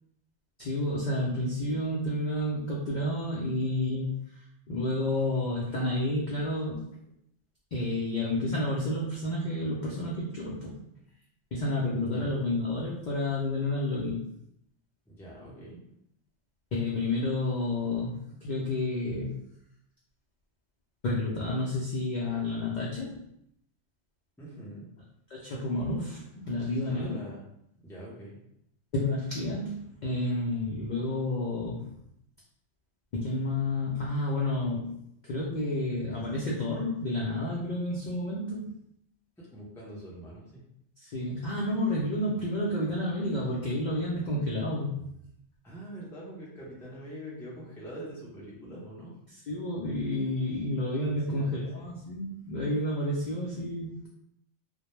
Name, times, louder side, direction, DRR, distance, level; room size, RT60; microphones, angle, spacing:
voice 1, 0.6-6.8 7.7-10.8 11.5-14.3 16.7-19.4 21.0-23.2 25.3-27.2 28.9-31.9 33.1-34.9 35.2-38.7 41.0-45.1 49.5-54.1, left 1 dB, 70° left, -4 dB, 0.4 m, -30 dB
voice 2, 12.0-12.3 15.1-15.8 24.4-24.9 26.8-27.5 27.8-28.4 39.4-40.6 45.6-49.1 51.1-51.9, equal, 5° left, -6 dB, 0.3 m, -44 dB
2.1 x 2.1 x 3.0 m, 0.76 s
omnidirectional pair, 1.3 m